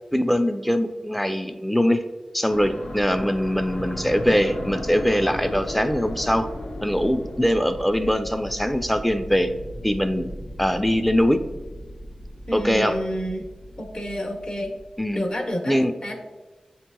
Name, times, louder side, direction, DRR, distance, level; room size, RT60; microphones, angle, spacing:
voice 1, 0.1-2.0 2.3-6.5 6.8-9.5 9.8-10.3 10.6-11.4 12.5-12.9 15.0-15.2 15.7-15.9, equal, 5° left, 8 dB, 0.4 m, -22 dB
sound 1, 2.5-15.1, left 1 dB, 85° left, 0.6 m, -36 dB
voice 2, 12.5-13.5 13.8-14.8 15.1-16.2, equal, 45° left, 2 dB, 0.8 m, -29 dB
7.3 x 2.9 x 2.3 m, 1.2 s
cardioid pair, 45°, 2 cm